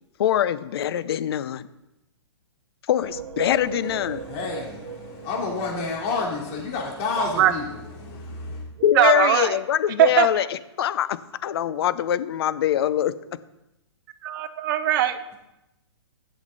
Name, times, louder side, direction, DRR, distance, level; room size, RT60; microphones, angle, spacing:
voice 1, 0.2-1.7 2.9-4.2 8.8-10.4 10.8-13.1, left 11 dB, 60° left, 15 dB, 0.6 m, -23 dB
sound 1, 3.0-6.6, right 6 dB, 80° right, 1.4 m, -38 dB
voice 2, 3.7-8.7, left 3 dB, 35° left, -2 dB, 3.3 m, -30 dB
voice 3, 8.9-9.6 10.0-10.5 14.2-15.2, right 11 dB, 45° right, 11 dB, 0.8 m, -20 dB
11.0 x 7.3 x 4.0 m, 0.92 s
hypercardioid pair, 135°, 15 cm